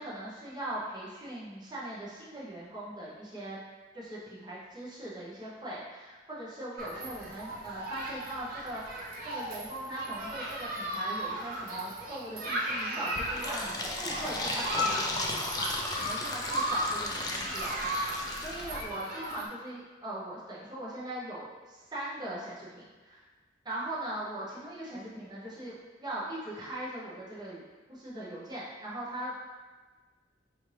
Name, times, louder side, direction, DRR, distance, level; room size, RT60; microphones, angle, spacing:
voice 1, 0.0-3.6 3.9-23.2 23.6-29.4, right 1 dB, 25° right, -8 dB, 0.8 m, -40 dB
Human group actions, 6.8-19.5, equal, 55° right, 0.6 m, -36 dB
Fill (with liquid), 13.1-18.8, left 2 dB, 20° left, 0.4 m, -35 dB
4.2 x 2.5 x 3.2 m, 1.3 s
head